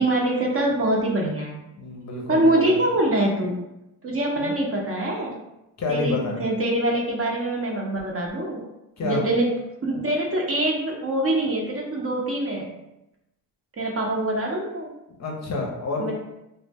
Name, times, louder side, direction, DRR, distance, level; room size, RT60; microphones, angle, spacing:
voice 1, 0.0-1.6 2.3-3.6 4.0-5.3 5.9-8.6 9.0-9.5 9.8-12.7 13.8-14.9 16.0-16.1, right 1 dB, 30° right, -1 dB, 0.6 m, -24 dB
voice 2, 1.7-2.7 4.4-4.5 5.8-6.4 9.0-9.3 15.2-16.1, left 3 dB, 40° left, 0 dB, 0.6 m, -28 dB
2.1 x 2.0 x 3.4 m, 0.90 s
supercardioid pair, 70°, 44 cm